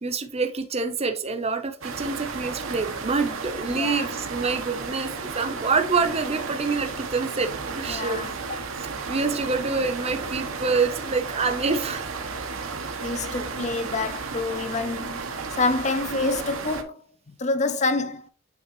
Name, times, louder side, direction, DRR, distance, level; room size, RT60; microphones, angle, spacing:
voice 1, 0.0-8.2 8.8-12.0 13.1-13.4, right 4 dB, 30° right, 0.7 m, -27 dB
sound 1, 1.8-16.8, right 4 dB, 85° right, 1.0 m, -33 dB
voice 2, 3.7-4.1 7.9-8.3 13.0-15.2 15.6-17.0 17.4-18.3, left 3 dB, 35° left, 0.5 m, -27 dB
8.6 x 3.5 x 3.0 m
head